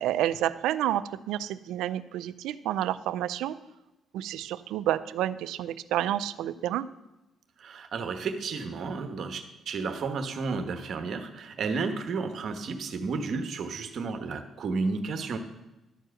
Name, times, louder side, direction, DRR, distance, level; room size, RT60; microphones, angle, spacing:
voice 1, 0.0-3.6 4.1-6.9, right 12 dB, 90° right, 15 dB, 0.4 m, -29 dB
voice 2, 7.6-15.4, right 4 dB, 60° right, 8 dB, 1.1 m, -32 dB
12.0 x 4.7 x 7.6 m, 0.98 s
cardioid pair, 90°, 0 cm